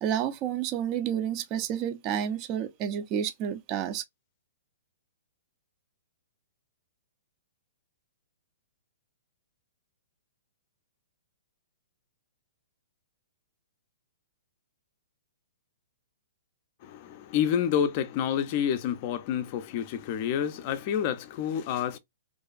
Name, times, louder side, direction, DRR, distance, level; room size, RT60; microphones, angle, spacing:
voice 1, 0.0-4.0, right 9 dB, 30° right, 0.5 m, -30 dB
voice 2, 16.8-22.0, left 9 dB, 40° left, 0.4 m, -28 dB
2.6 x 2.3 x 2.3 m
hypercardioid pair, 145°, 0 cm